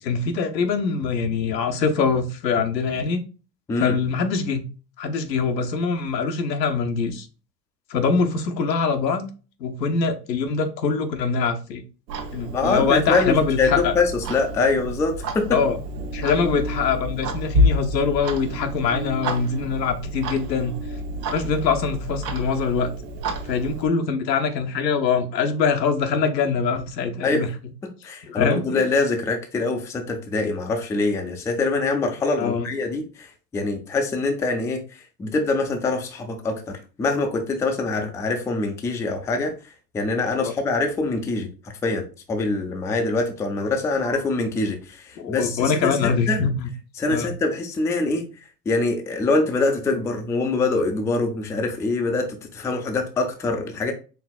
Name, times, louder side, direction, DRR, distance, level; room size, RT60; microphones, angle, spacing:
voice 1, 0.0-3.2 3.8-4.6 5.0-7.3 7.9-9.3 9.6-11.8 12.3-13.9 15.5-15.8 16.1-20.7 21.3-22.9 23.4-27.5 28.3-28.6 32.4-32.7 40.4-40.5 45.2-46.7 47.1-47.4, left 5 dB, 85° left, 0.9 m, -23 dB
Clock, 12.1-23.9, equal, 75° right, 1.1 m, -29 dB
voice 2, 12.5-15.6 27.2-27.5 27.8-34.8 35.2-39.5 39.9-41.5 41.8-46.4 47.0-48.2 48.7-53.9, left 3 dB, 5° left, 0.3 m, -24 dB
4.6 x 3.4 x 2.3 m
hypercardioid pair, 95°, 49 cm